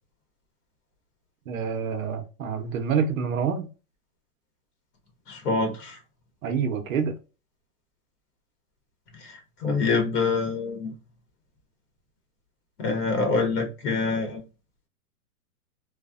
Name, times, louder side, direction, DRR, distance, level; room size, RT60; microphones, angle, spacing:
voice 1, 1.5-3.7 6.4-7.2, right 6 dB, 60° right, 0.7 m, -27 dB
voice 2, 5.3-6.0 9.2-9.3 9.6-10.9 12.8-14.4, left 4 dB, 85° left, 1.3 m, -25 dB
3.1 x 2.1 x 2.3 m
hypercardioid pair, 165°, 46 cm